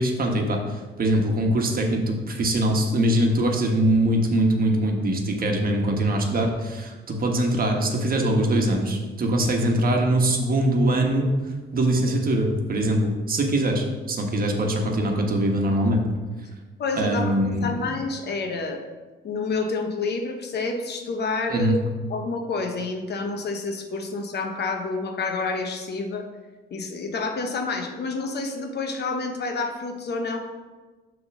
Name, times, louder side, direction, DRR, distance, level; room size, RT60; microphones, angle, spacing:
voice 1, 0.0-11.3 11.7-16.0 17.0-17.7 21.5-21.8, right 1 dB, 45° right, 2 dB, 1.3 m, -22 dB
voice 2, 16.8-18.8 19.2-21.8 22.1-26.3 26.7-30.4, left 3 dB, 55° left, 4 dB, 1.0 m, -28 dB
6.9 x 3.7 x 6.2 m, 1.3 s
cardioid pair, 90°, 20 cm